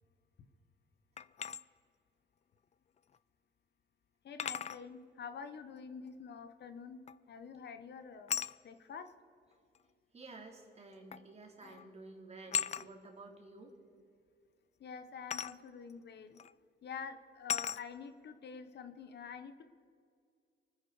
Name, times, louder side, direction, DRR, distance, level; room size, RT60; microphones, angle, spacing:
sound 1, 1.2-1.6 3.1-3.2 4.4-4.8 7.1-7.4 8.3-8.6 9.8-9.9 11.1-11.3 11.6-11.9 12.5-12.9 15.3-15.6 16.4-16.5 17.5-17.8, left 8 dB, 35° left, 0.4 m, -37 dB
voice 1, 4.2-7.0 7.3-8.3 8.6-9.1 14.8-16.4 16.8-19.6, left 6 dB, 60° left, 10 dB, 1.0 m, -47 dB
voice 2, 10.1-13.7, right 3 dB, 35° right, 1 dB, 3.0 m, -52 dB
24.5 x 10.0 x 4.8 m, 2.3 s
cardioid pair, 90°, 20 cm